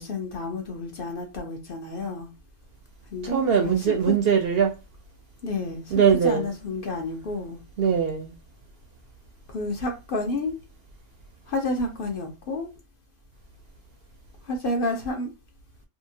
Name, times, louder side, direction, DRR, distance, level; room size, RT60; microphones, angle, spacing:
voice 1, 0.0-2.3 3.1-3.8 4.1-4.2 5.4-7.6 9.5-10.6 11.5-12.7 14.4-15.3, left 2 dB, 55° left, 0.7 m, -30 dB
voice 2, 3.2-4.7 5.9-6.5 7.8-8.3, right 7 dB, 65° right, 0.7 m, -21 dB
2.8 x 2.4 x 2.6 m
omnidirectional pair, 1.3 m